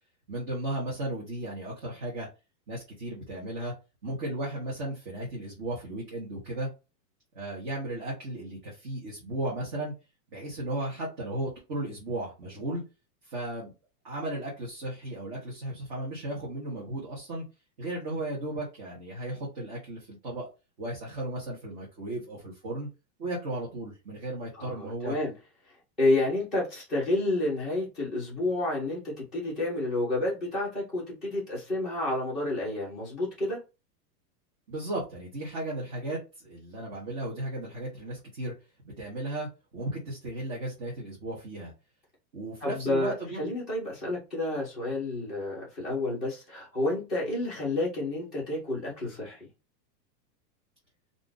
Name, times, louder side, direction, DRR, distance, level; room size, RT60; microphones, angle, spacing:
voice 1, 0.3-2.3 2.7-3.7 4.0-6.7 7.3-9.9 10.3-12.8 13.2-13.7 14.0-17.4 17.8-20.5 20.8-22.9 23.2-25.2 34.7-38.5 38.8-41.7 42.3-43.5, right 1 dB, 30° right, 0.9 m, -35 dB
voice 2, 24.5-25.3 26.0-33.6 42.6-49.4, left 2 dB, ahead, 0.5 m, -30 dB
2.6 x 2.3 x 3.7 m
supercardioid pair, 175°, 50 cm